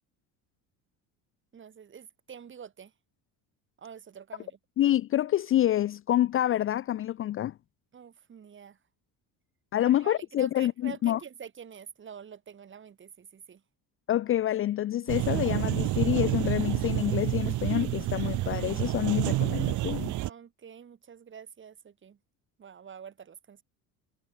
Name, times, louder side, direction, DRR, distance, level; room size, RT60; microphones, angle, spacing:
voice 1, 1.5-2.9 3.8-4.6 7.9-8.8 9.8-13.6 20.2-22.2 22.6-23.6, right 7 dB, 35° right, 6.0 m, -47 dB
voice 2, 4.8-7.5 9.7-11.2 14.1-20.1, left 12 dB, 35° left, 0.5 m, -27 dB
sound 1, 15.1-20.3, right 17 dB, 55° right, 0.9 m, -29 dB
cardioid pair, 140°, 36 cm